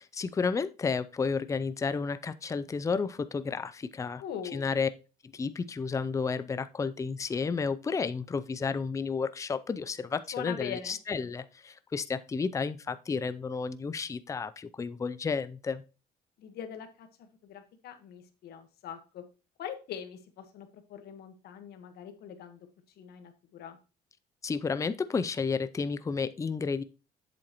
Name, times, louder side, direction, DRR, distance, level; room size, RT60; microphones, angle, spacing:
voice 1, 0.0-4.2 4.5-4.9 5.3-15.8 24.4-26.8, left 5 dB, 20° left, 13 dB, 0.5 m, -32 dB
voice 2, 4.2-4.7 10.3-11.0 16.4-19.2 19.6-22.6 23.0-23.8, left 9 dB, 70° left, 8 dB, 1.4 m, -42 dB
7.7 x 7.4 x 3.0 m, 0.32 s
cardioid pair, 110°, 17 cm